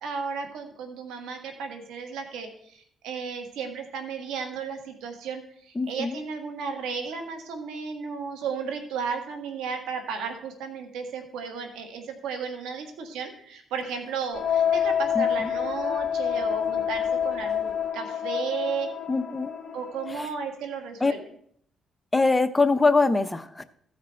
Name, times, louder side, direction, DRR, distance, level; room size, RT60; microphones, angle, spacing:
voice 1, 0.0-18.9 19.7-21.2, right 5 dB, 90° right, 6 dB, 1.6 m, -34 dB
voice 2, 5.8-6.2 15.1-15.5 19.1-19.5 20.1-20.3 21.0-21.1 22.1-23.6, left 3 dB, 15° left, 11 dB, 0.7 m, -23 dB
sound 1, 14.3-20.2, left 8 dB, 40° left, 2.1 m, -27 dB
14.5 x 5.1 x 4.4 m, 0.64 s
cardioid pair, 90°, 0 cm